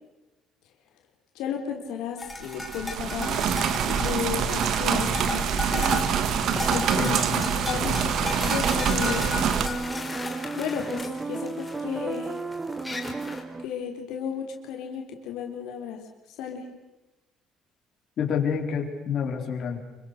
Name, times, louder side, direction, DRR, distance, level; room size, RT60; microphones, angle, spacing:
voice 1, 1.4-3.4 3.8-6.0 6.7-7.2 7.6-9.3 10.6-12.4 13.6-16.0 16.3-16.7, left 8 dB, 80° left, 2 dB, 3.6 m, -33 dB
sound 1, 2.2-13.4, left 2 dB, 10° left, 3.4 m, -35 dB
sound 2, 2.4-9.7, right 7 dB, 55° right, 1.9 m, -25 dB
sound 3, 6.6-13.7, right 3 dB, 15° right, 0.8 m, -35 dB
voice 2, 6.9-7.5 18.2-19.8, left 7 dB, 45° left, 1 dB, 4.3 m, -28 dB
27.0 x 24.5 x 6.6 m, 1.1 s
cardioid pair, 155°, 0 cm